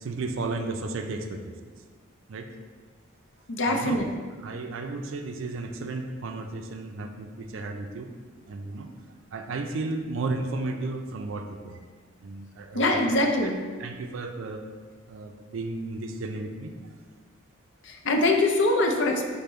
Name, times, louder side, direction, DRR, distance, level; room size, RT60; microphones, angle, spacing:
voice 1, 0.0-1.5 2.3-2.5 3.7-4.0 4.4-8.1 8.5-8.9 9.3-11.8 12.2-13.2 13.8-14.6 15.1-16.7, right 3 dB, 70° right, 5 dB, 0.4 m, -33 dB
voice 2, 3.5-4.1 12.7-13.6 17.8-19.3, left 2 dB, 60° left, 3 dB, 0.5 m, -23 dB
5.1 x 2.1 x 4.3 m, 1.6 s
head